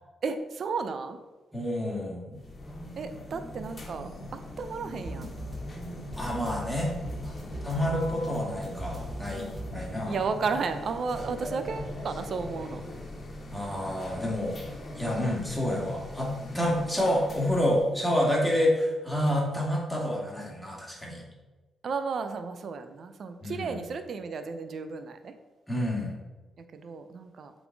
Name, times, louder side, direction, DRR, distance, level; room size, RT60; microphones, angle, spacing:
voice 1, 0.2-1.2 3.0-5.3 10.1-12.8 21.8-25.3 26.7-27.5, right 4 dB, 60° right, 9 dB, 0.6 m, -33 dB
voice 2, 1.5-2.4 6.2-6.9 7.6-10.2 13.5-14.6 15.0-21.2 23.4-23.8 25.7-26.1, left 1 dB, 5° left, -3 dB, 2.3 m, -28 dB
sound 1, 2.3-18.0, left 1 dB, 40° left, 1.5 m, -41 dB
sound 2, 4.9-10.2, equal, 30° right, 1.6 m, -40 dB
7.7 x 4.0 x 4.7 m, 1.2 s
cardioid pair, 85°, 0 cm